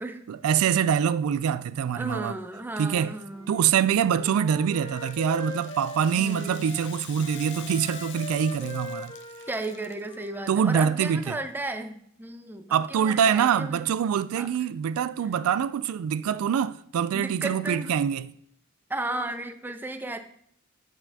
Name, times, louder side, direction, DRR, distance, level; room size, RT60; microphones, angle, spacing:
voice 1, 0.3-2.4 2.8-3.1 3.5-9.1 10.5-11.4 12.7-18.3, right 8 dB, 75° right, 0.3 m, -25 dB
voice 2, 1.9-3.6 6.2-6.7 9.5-13.9 14.4-14.5 17.1-17.9 18.9-20.2, right 2 dB, 10° right, 0.4 m, -34 dB
Wind instrument woodwind instrument, 3.3-6.8 7.2-11.0, left 1 dB, 25° left, 1.7 m, -41 dB
Rattle (instrument), 4.8-10.3, left 10 dB, 55° left, 0.5 m, -46 dB
7.7 x 6.8 x 2.8 m
head